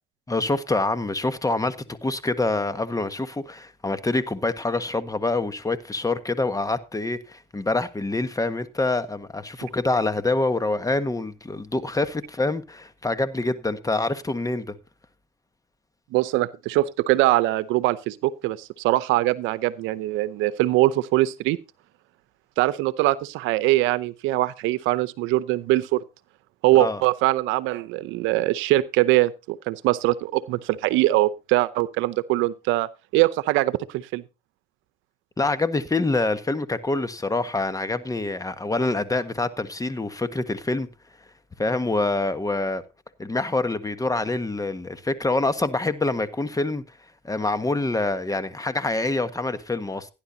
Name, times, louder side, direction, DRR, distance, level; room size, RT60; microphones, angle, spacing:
voice 1, 0.3-14.7 26.7-27.0 35.4-40.9 41.6-42.8 43.2-46.8 47.2-50.1, left 2 dB, 15° left, 1.4 m, -26 dB
voice 2, 16.1-21.6 22.6-26.0 26.6-34.2, right 17 dB, 85° right, 0.8 m, -22 dB
17.0 x 10.5 x 2.8 m
supercardioid pair, 80°, 20 cm